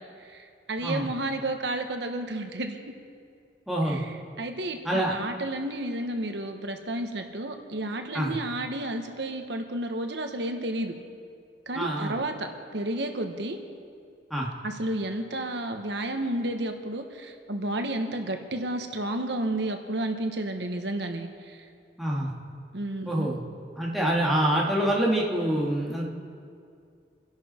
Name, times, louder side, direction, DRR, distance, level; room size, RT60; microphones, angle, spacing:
voice 1, 0.2-2.8 3.9-10.9 11.7-12.5 12.7-13.6 14.6-21.7 22.7-23.3, right 1 dB, 75° right, 5 dB, 1.3 m, -31 dB
voice 2, 3.7-4.0 4.8-5.1 8.1-8.3 11.7-12.1 14.3-14.5 22.0-22.3 23.1-23.4 23.8-26.1, right 1 dB, ahead, -5 dB, 2.3 m, -26 dB
28.0 x 11.0 x 4.4 m, 2.3 s
head